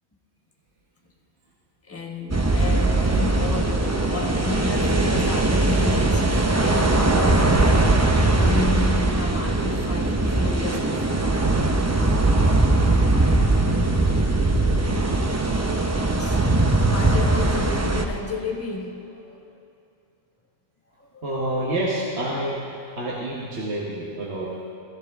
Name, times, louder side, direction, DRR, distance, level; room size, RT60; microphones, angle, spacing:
voice 1, 1.9-8.0 8.3-11.3 15.9-16.4 16.9-19.4 21.0-21.2, left 3 dB, 10° left, 0 dB, 1.1 m, -31 dB
sound 1, 2.3-18.1, right 2 dB, 20° right, 0.4 m, -20 dB
voice 2, 14.7-15.1 21.2-22.6 23.0-24.6, right 1 dB, 55° right, -4 dB, 1.5 m, -28 dB
16.0 x 13.5 x 3.6 m, 2.6 s
omnidirectional pair, 1.4 m